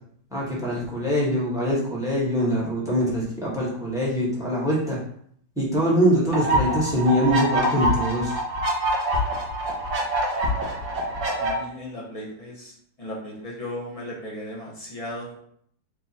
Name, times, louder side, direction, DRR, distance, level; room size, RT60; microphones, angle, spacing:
voice 1, 0.3-5.0 5.6-8.3, equal, ahead, -5 dB, 0.9 m, -23 dB
sound 1, 6.3-11.5, right 1 dB, 85° right, 1.8 m, -25 dB
voice 2, 10.8-12.7 13.0-15.4, left 1 dB, 40° left, -3 dB, 0.5 m, -36 dB
4.6 x 2.3 x 4.1 m, 0.65 s
omnidirectional pair, 2.0 m